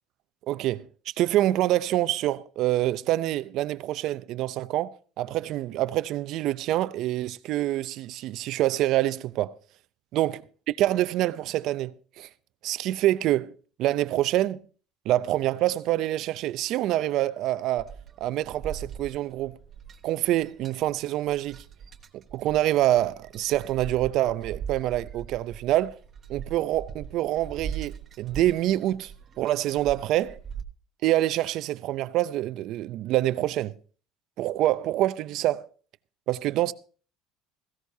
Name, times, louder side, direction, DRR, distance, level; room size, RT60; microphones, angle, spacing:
voice 1, 0.5-0.8 1.2-9.5 10.1-10.4 10.7-12.3 12.6-13.5 13.8-14.6 15.1-17.9 18.2-19.6 20.0-21.6 22.3-25.9 26.3-29.1 29.4-30.4 31.0-33.7 34.4-35.7 36.3-36.7, right 14 dB, 65° right, 0.6 m, -26 dB
sound 1, 17.8-30.6, right 7 dB, 40° right, 1.1 m, -41 dB
16.5 x 15.5 x 2.8 m
supercardioid pair, 110°, 0 cm